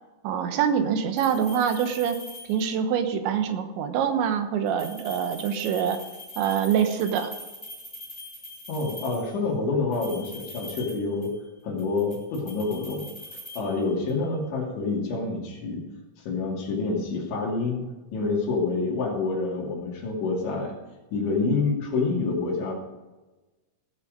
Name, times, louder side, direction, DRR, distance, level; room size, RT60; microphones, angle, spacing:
voice 1, 0.2-2.2 2.4-6.0 6.4-7.3, right 8 dB, 80° right, 8 dB, 3.3 m, -25 dB
sound 1, 1.2-2.9 4.7-9.4 9.9-11.5 11.8-14.2, left 1 dB, 10° left, 1.2 m, -43 dB
voice 2, 8.7-11.3 11.6-13.0 13.6-15.8 16.2-17.8 18.1-20.7 21.1-22.7, left 3 dB, 80° left, -4 dB, 5.0 m, -27 dB
17.0 x 7.2 x 5.2 m, 1.1 s
omnidirectional pair, 5.3 m